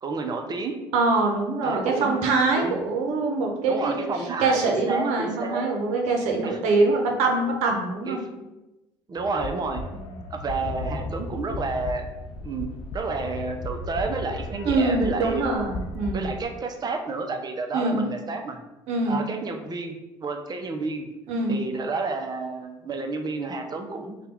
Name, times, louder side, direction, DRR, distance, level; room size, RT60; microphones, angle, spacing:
voice 1, 0.0-0.8 1.6-2.2 2.5-2.8 3.7-5.6 6.4-6.6 8.1-8.5 9.1-9.8 10.3-12.0 12.4-15.7 16.1-18.6 19.1-19.9 20.2-21.1 21.5-24.2, right 3 dB, 35° right, 4 dB, 0.7 m, -30 dB
voice 2, 0.9-8.2 9.9-10.2 14.6-16.3 17.7-18.1 18.9-19.2 21.3-21.6, right 3 dB, 70° right, 2 dB, 0.8 m, -24 dB
sound 1, 9.2-16.5, left 2 dB, 50° left, 0.5 m, -35 dB
3.3 x 2.3 x 4.4 m, 1.0 s
hypercardioid pair, 65°, 12 cm